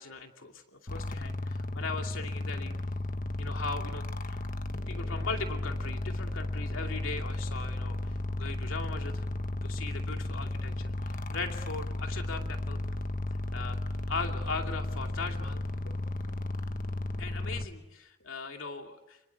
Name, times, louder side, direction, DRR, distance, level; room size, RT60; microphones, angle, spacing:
voice 1, 0.0-2.7 3.4-4.4 4.9-9.3 9.6-12.8 13.5-13.8 14.1-16.0 17.2-19.2, left 4 dB, 85° left, 3 dB, 2.6 m, -39 dB
sound 1, 0.9-17.7, left 1 dB, 40° left, 1.3 m, -34 dB
29.5 x 21.0 x 8.4 m, 0.92 s
head